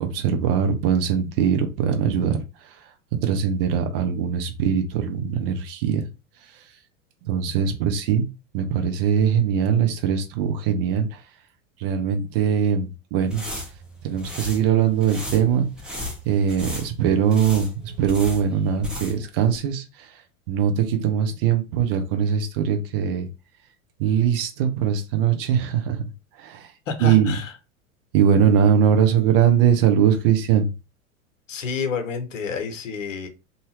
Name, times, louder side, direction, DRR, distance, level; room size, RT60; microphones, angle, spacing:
voice 1, 0.0-2.4 3.2-6.0 7.2-8.2 8.5-11.1 11.8-13.4 14.0-15.7 16.3-19.8 20.5-23.3 24.0-26.0 26.4-26.7 27.0-27.3 28.1-30.7, right 8 dB, 40° right, 0.7 m, -21 dB
sound 1, 13.2-19.3 19.5-19.6, left 1 dB, ahead, 0.7 m, -35 dB
voice 2, 26.9-27.5 31.5-33.3, left 5 dB, 65° left, 0.9 m, -29 dB
2.7 x 2.4 x 3.1 m
figure-of-eight pair, 90°, 41 cm